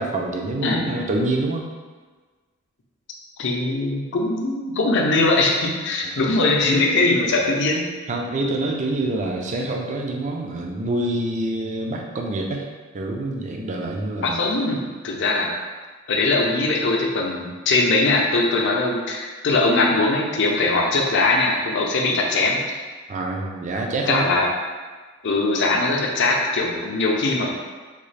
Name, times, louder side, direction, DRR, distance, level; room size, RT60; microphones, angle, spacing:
voice 1, 0.0-1.7 8.1-12.7 12.9-14.5 23.1-24.4, right 2 dB, 35° right, 1 dB, 0.4 m, -26 dB
voice 2, 3.4-7.8 14.2-15.5 16.1-22.6 24.1-24.5 25.2-27.6, left 2 dB, 60° left, 0 dB, 0.5 m, -21 dB
3.7 x 2.3 x 3.2 m, 1.4 s
head